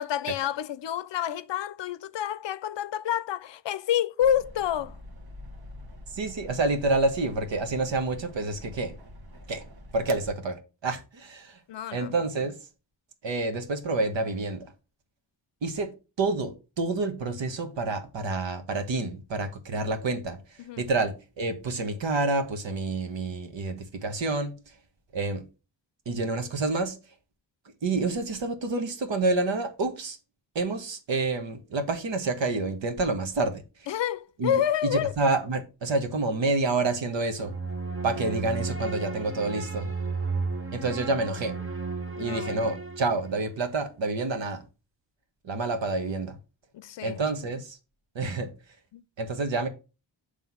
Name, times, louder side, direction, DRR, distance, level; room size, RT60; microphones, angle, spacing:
voice 1, 0.0-5.0 11.7-12.1 20.6-20.8 33.9-35.1 42.2-42.7 46.7-47.3 48.9-49.0, left 10 dB, 70° left, 0.5 m, -29 dB
sound 1, 4.2-10.3, left 1 dB, 55° right, 1.4 m, -46 dB
voice 2, 6.1-8.9 9.5-9.6 9.9-11.6 11.9-12.5 13.2-14.7 15.6-15.9 16.2-24.7 25.1-25.4 26.0-27.0 27.8-30.2 30.5-33.6 34.4-34.5 34.8-37.5 38.0-39.9 40.7-41.6 42.2-44.6 45.4-46.4 47.0-47.8 48.1-48.5 49.2-49.7, right 3 dB, 75° right, 1.3 m, -28 dB
sound 2, 37.4-43.5, right 4 dB, 30° right, 0.8 m, -33 dB
7.7 x 3.4 x 5.5 m
wide cardioid pair, 155°, 45 cm